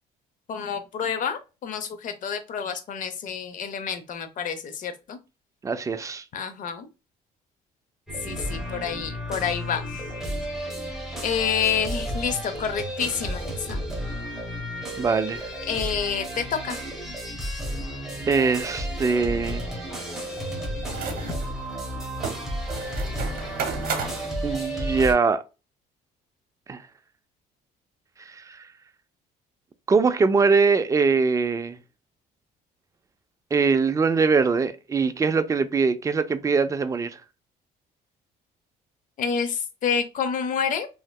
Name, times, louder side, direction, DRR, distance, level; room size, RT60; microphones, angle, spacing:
voice 1, 0.5-5.2 6.3-6.9 8.2-9.8 11.2-13.8 15.7-16.8 39.2-40.9, left 7 dB, 50° left, 0.7 m, -28 dB
voice 2, 5.6-6.2 15.0-15.5 18.3-19.7 24.4-25.4 26.7-26.8 28.3-28.6 29.9-31.8 33.5-37.2, right 4 dB, 20° right, 0.3 m, -22 dB
sound 1, 8.1-25.1, equal, 5° right, 1.1 m, -32 dB
sound 2, 15.8-15.9 16.3-16.4 20.8-24.3, right 5 dB, 55° right, 0.9 m, -33 dB
3.1 x 2.8 x 2.3 m
cardioid pair, 110°, 17 cm